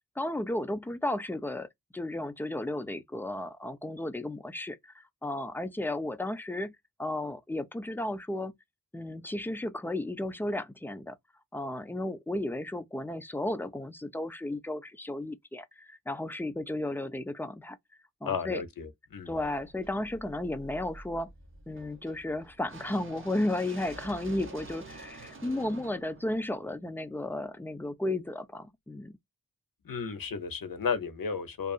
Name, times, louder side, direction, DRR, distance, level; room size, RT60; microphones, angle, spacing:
voice 1, 0.2-8.5 8.9-11.2 11.5-17.8 18.2-18.6 19.3-21.3 21.7-29.1, left 1 dB, 5° left, 0.3 m, -34 dB
voice 2, 18.2-19.3 29.8-31.7, left 6 dB, 75° left, 0.7 m, -33 dB
sound 1, 19.3-27.3, right 2 dB, 35° right, 0.9 m, -49 dB
2.7 x 2.4 x 2.3 m
wide cardioid pair, 75°, 35 cm